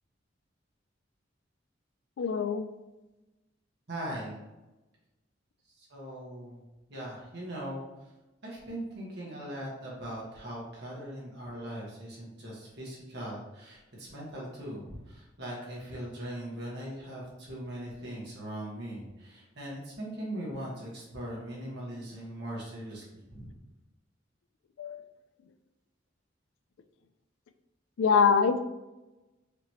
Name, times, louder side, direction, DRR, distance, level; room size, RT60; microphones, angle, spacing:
voice 1, 2.2-2.7 24.8-25.0 28.0-28.6, left 6 dB, 85° left, 10 dB, 0.4 m, -24 dB
voice 2, 3.9-4.5 5.8-6.6 6.9-7.8 8.4-23.5, right 1 dB, 60° right, -5 dB, 1.4 m, -40 dB
5.0 x 3.0 x 2.9 m, 1.0 s
head